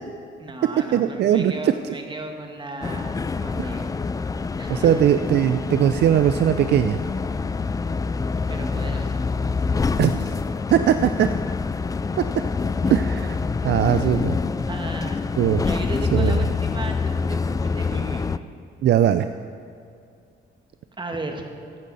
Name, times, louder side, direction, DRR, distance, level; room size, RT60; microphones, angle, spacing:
voice 1, 0.4-3.9 4.4-5.2 8.5-9.6 12.8-13.2 13.8-14.2 14.7-15.2 15.6-18.3 21.0-21.4, right 2 dB, 25° right, 3 dB, 1.6 m, -35 dB
voice 2, 0.9-1.5 3.6-3.7 4.7-7.0 10.0-10.3 10.7-11.3 12.9-13.4 13.6-14.4 15.4-15.6 16.1-16.4 18.8-19.3, right 10 dB, 60° right, 10 dB, 0.4 m, -19 dB
sound 1, 2.8-18.4, left 4 dB, 20° left, 0.3 m, -26 dB
15.0 x 11.0 x 4.1 m, 2.4 s
cardioid pair, 90°, 20 cm